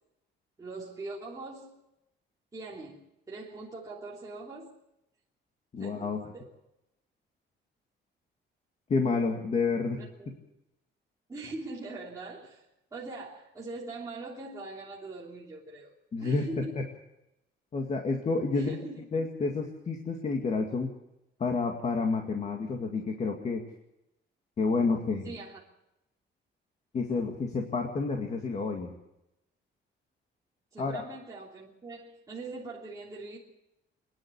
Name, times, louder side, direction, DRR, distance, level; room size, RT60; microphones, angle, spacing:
voice 1, 0.6-1.7 2.5-3.0 3.3-4.7 5.8-6.5 10.0-10.3 11.3-12.6 12.9-15.9 16.2-16.8 18.5-19.1 25.2-25.6 30.7-33.4, right 2 dB, 20° right, -6 dB, 3.1 m, -42 dB
voice 2, 5.7-6.2 8.9-10.0 16.1-16.5 17.7-18.8 19.1-20.9 21.4-23.6 24.6-25.3 26.9-29.0 30.8-31.0, left 4 dB, 35° left, 3 dB, 2.1 m, -29 dB
26.0 x 10.5 x 9.7 m, 0.88 s
cardioid pair, 175°, 19 cm